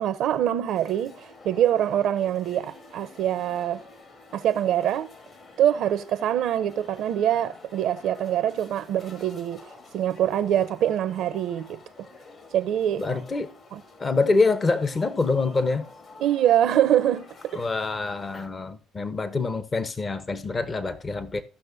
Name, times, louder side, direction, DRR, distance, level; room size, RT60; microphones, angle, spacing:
voice 1, 0.0-3.8 4.3-5.1 5.6-9.6 9.9-12.1 12.5-13.2 13.7-13.8 16.2-17.6, right 11 dB, 70° right, 0.6 m, -24 dB
sound 1, 0.7-18.5, left 3 dB, 55° left, 2.6 m, -49 dB
voice 2, 13.0-13.5 14.0-15.9 17.5-21.4, left 3 dB, 35° left, 0.9 m, -25 dB
15.5 x 6.0 x 2.6 m
supercardioid pair, 75°, 0 cm